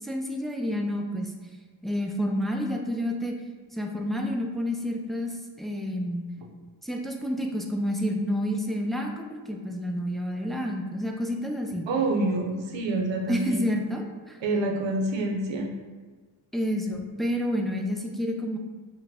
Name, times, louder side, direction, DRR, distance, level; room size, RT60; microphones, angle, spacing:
voice 1, 0.0-1.3 1.8-3.4 3.7-6.2 6.8-11.9 13.3-14.4 16.5-18.6, equal, ahead, 2 dB, 0.4 m, -29 dB
voice 2, 11.9-13.7 14.4-15.7, right 2 dB, 80° right, 2 dB, 0.7 m, -27 dB
4.5 x 2.2 x 3.5 m, 1.4 s
cardioid pair, 75°, 44 cm